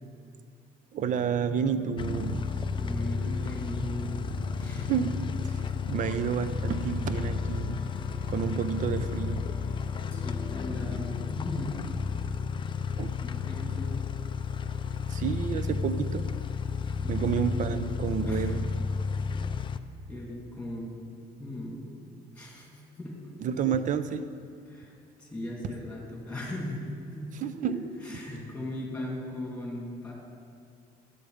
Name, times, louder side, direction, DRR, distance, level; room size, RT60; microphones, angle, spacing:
voice 1, 0.9-2.4 4.9-5.1 5.9-7.8 8.3-9.4 13.0-13.2 15.1-16.3 17.1-18.7 23.4-24.2 27.4-27.8, right 7 dB, 50° right, 12 dB, 0.6 m, -30 dB
sound 1, 1.0-12.7, equal, 25° right, 3.1 m, -45 dB
sound 2, 2.0-19.8, left 5 dB, 30° left, 0.4 m, -32 dB
voice 2, 2.7-5.1 10.1-11.8 13.2-14.0 17.0-17.5 18.2-18.6 20.1-21.0 21.4-21.9 22.3-23.3 24.7-24.9 25.2-27.3 27.7-27.8 28.0-30.1, left 1 dB, 5° left, -2 dB, 2.8 m, -38 dB
Wind instrument woodwind instrument, 5.8-10.7, left 6 dB, 70° left, 0.7 m, -52 dB
12.0 x 8.6 x 5.0 m, 2.4 s
cardioid pair, 110°, 17 cm